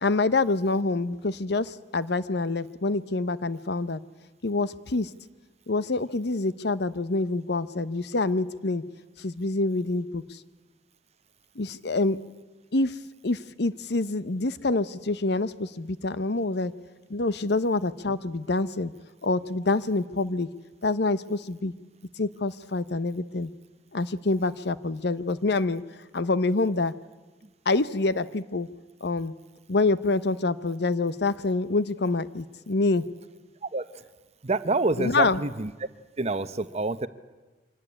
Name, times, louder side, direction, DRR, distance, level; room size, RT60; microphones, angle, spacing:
voice 1, 0.0-4.0 4.4-5.1 5.7-8.8 9.2-10.4 11.6-12.2 12.7-13.0 13.2-16.7 17.1-18.9 19.2-20.5 20.8-21.7 22.2-23.5 23.9-25.8 26.1-26.9 27.6-28.7 29.0-29.3 29.7-33.1 35.0-35.4, left 3 dB, 65° left, 15 dB, 0.9 m, -26 dB
voice 2, 34.4-35.7 36.2-37.1, right 3 dB, 35° right, 13 dB, 0.9 m, -27 dB
24.5 x 18.0 x 9.9 m, 1.2 s
head